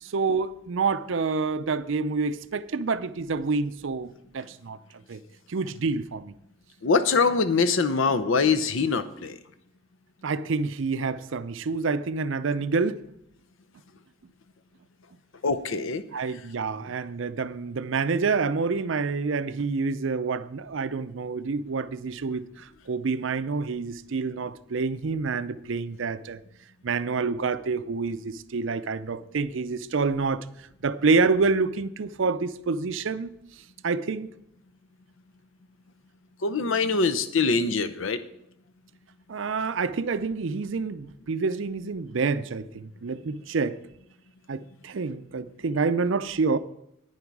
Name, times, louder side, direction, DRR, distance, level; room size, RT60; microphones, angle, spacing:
voice 1, 0.0-4.1 4.3-4.8 5.1-5.2 5.5-6.3 10.2-13.0 16.1-26.4 26.8-30.5 30.8-33.3 33.8-34.3 39.3-43.8 44.5-46.6, right 4 dB, 65° right, 0.5 m, -27 dB
voice 2, 6.8-9.4 15.4-16.0 36.4-38.2, left 4 dB, 70° left, 0.7 m, -23 dB
11.0 x 9.9 x 4.7 m
head